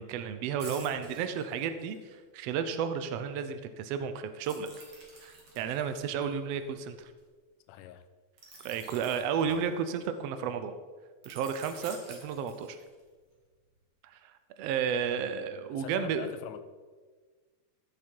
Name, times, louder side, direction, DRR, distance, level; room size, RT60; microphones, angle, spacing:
voice 1, 0.0-4.7 5.2-7.1 8.6-10.7 11.2-12.8 14.0-16.3, right 7 dB, 90° right, 1.4 m, -33 dB
sound 1, 0.6-2.1 4.4-7.2 8.4-10.2 11.2-13.1 13.5-13.7, right 2 dB, 45° right, 2.7 m, -50 dB
voice 2, 7.7-8.1 9.4-9.6 15.7-16.6, left 10 dB, 85° left, 2.2 m, -44 dB
14.5 x 7.4 x 4.5 m
omnidirectional pair, 3.7 m